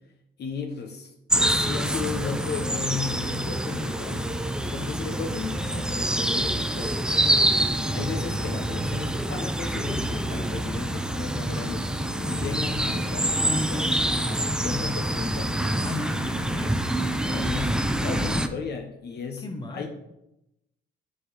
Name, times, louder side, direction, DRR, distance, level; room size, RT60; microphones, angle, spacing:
voice 1, 0.4-4.4 4.7-7.0 7.9-11.9 12.3-15.6 17.2-19.4 19.7-19.9, left 6 dB, 55° left, 4 dB, 0.8 m, -35 dB
sound 1, 1.3-18.5, right 1 dB, 5° right, 0.4 m, -26 dB
sound 2, 1.8-18.7, equal, 90° right, 1.0 m, -45 dB
voice 2, 15.8-16.8 19.4-19.9, left 2 dB, 20° left, 4 dB, 1.0 m, -35 dB
7.6 x 3.9 x 3.3 m, 0.86 s
cardioid pair, 90°, 20 cm